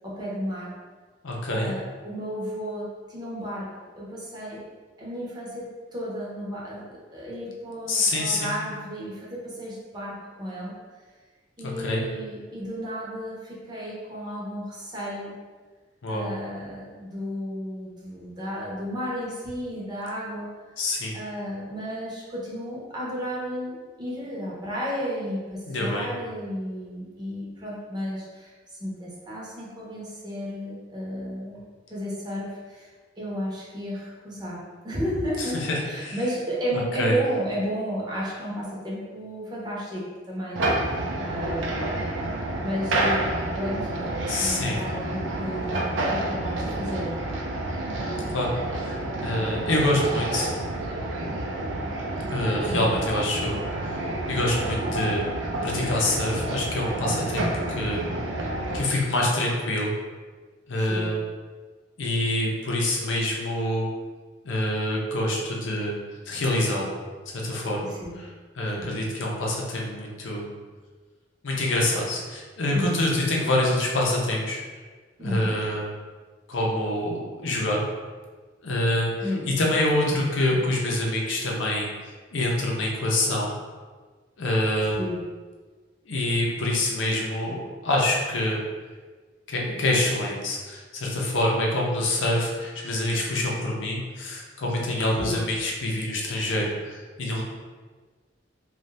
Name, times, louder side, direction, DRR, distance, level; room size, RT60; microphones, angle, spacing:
voice 1, 0.0-0.8 1.5-3.7 4.0-4.6 5.0-10.7 11.6-15.3 16.1-20.5 21.1-28.5 28.8-32.9 33.2-42.1 42.6-47.1 52.6-52.9 60.8-61.1 67.8-68.2 68.8-68.9 72.7-73.0 75.2-75.6 79.2-79.6 85.0-85.2 95.1-95.4, equal, 25° right, -6 dB, 0.7 m, -33 dB
voice 2, 1.2-1.7 7.9-8.5 11.6-12.0 16.0-16.3 20.8-21.1 25.7-26.1 35.4-36.1 36.7-37.2 44.3-44.8 48.3-48.5 48.8-48.9 49.2-50.5 52.3-53.6 53.9-54.0 54.3-55.2 55.6-58.0 58.7-59.9 60.7-61.2 62.0-63.9 64.4-66.0 66.3-66.9 67.3-68.3 68.5-70.5 71.4-74.6 75.2-75.8 76.5-77.8 78.6-79.1 79.5-81.9 82.3-83.5 84.4-85.0 86.1-88.6 89.5-97.4, left 1 dB, 85° left, -2 dB, 0.6 m, -26 dB
sound 1, 40.6-58.8, right 1 dB, 85° right, 0.4 m, -29 dB
2.6 x 2.3 x 3.2 m, 1.4 s
head